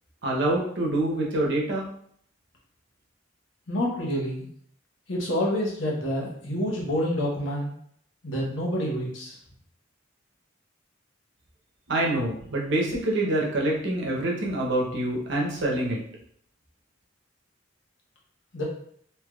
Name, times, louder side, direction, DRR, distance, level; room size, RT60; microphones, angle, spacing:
voice 1, 0.2-1.9 11.9-16.0, right 1 dB, 65° right, -2 dB, 0.8 m, -26 dB
voice 2, 3.7-4.5 5.1-7.7 8.2-9.4 18.5-18.6, equal, 80° left, -3 dB, 1.0 m, -28 dB
3.3 x 2.8 x 2.3 m, 0.64 s
head